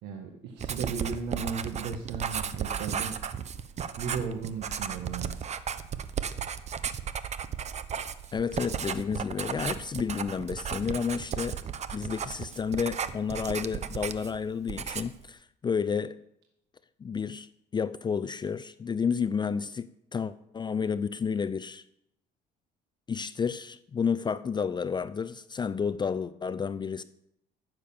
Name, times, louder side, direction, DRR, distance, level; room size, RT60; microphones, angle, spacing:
voice 1, 0.0-3.2 4.0-5.3, right 5 dB, 85° right, 1.6 m, -35 dB
Writing, 0.6-14.4 14.7-15.2, right 7 dB, 40° right, 0.9 m, -34 dB
voice 2, 8.3-11.6 11.9-16.2 17.0-21.8 23.1-27.0, left 6 dB, 25° left, 0.5 m, -31 dB
15.5 x 6.7 x 7.1 m
cardioid pair, 110°, 17 cm